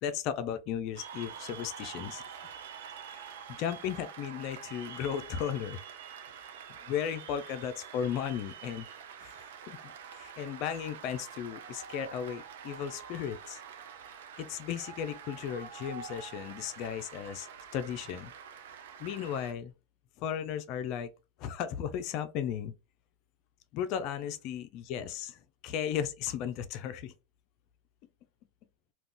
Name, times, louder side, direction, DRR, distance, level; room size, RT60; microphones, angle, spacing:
voice 1, 0.0-2.2 3.5-5.8 6.9-8.9 9.2-9.3 9.7-9.8 10.1-13.6 14.4-17.5 17.7-18.3 19.0-19.7 20.2-21.1 21.4-22.7 23.7-27.1, left 9 dB, 55° left, 0.5 m, -35 dB
Cheering / Applause, 1.0-19.5, right 7 dB, 80° right, 0.5 m, -46 dB
2.4 x 2.3 x 3.7 m
supercardioid pair, 115°, 0 cm